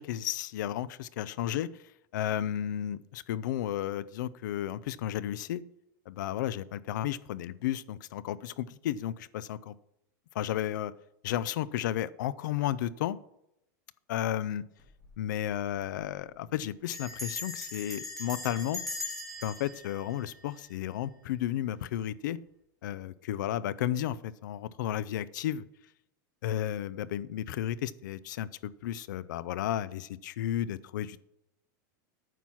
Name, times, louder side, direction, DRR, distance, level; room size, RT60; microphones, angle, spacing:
voice 1, 0.0-1.7 2.1-5.6 6.1-9.7 10.3-10.9 11.2-13.2 14.1-14.6 15.2-18.8 19.4-22.4 22.8-25.6 26.4-31.2, left 11 dB, 70° left, 19 dB, 0.5 m, -33 dB
Bell, 14.8-15.2 15.4-15.5 15.8-16.1 16.9-21.0, left 2 dB, ahead, 2.8 m, -40 dB
9.2 x 6.0 x 5.7 m, 0.80 s
supercardioid pair, 165°, 10 cm